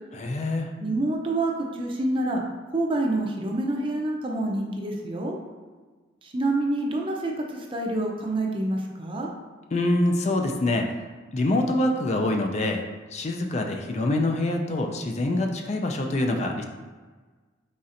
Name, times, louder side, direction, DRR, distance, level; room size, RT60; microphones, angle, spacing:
voice 1, 0.1-0.7 9.7-11.0 11.3-12.8 13.1-16.6, left 2 dB, 35° left, 3 dB, 0.3 m, -25 dB
voice 2, 0.8-2.4 2.7-5.3 6.3-7.4 7.7-9.3, right 2 dB, 30° right, 0 dB, 0.5 m, -27 dB
4.1 x 4.1 x 2.5 m, 1.4 s
head